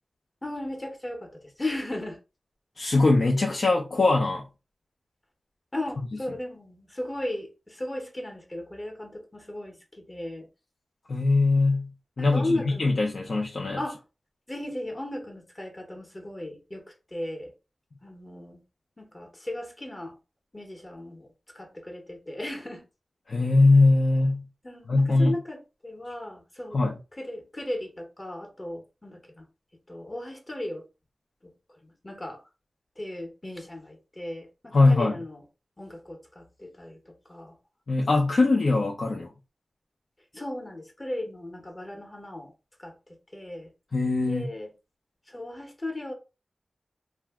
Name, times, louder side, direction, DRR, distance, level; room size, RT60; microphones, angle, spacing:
voice 1, 0.4-2.2 5.7-10.5 12.2-12.9 13.8-14.0 14.5-17.5 18.0-18.6 19.0-20.2 20.5-22.8 24.6-26.8 27.2-29.4 29.9-30.8 31.8-32.4 33.0-35.4 35.8-37.6 40.3-42.5 42.8-43.7 44.3-44.7 45.3-46.1, left 1 dB, 25° left, 0.8 m, -36 dB
voice 2, 2.8-4.4 11.1-11.9 12.2-13.8 23.3-24.4 24.9-25.3 26.7-27.0 34.7-35.1 37.9-39.3 43.9-44.5, left 3 dB, 65° left, 0.5 m, -21 dB
2.6 x 2.1 x 3.4 m
wide cardioid pair, 65°, 0 cm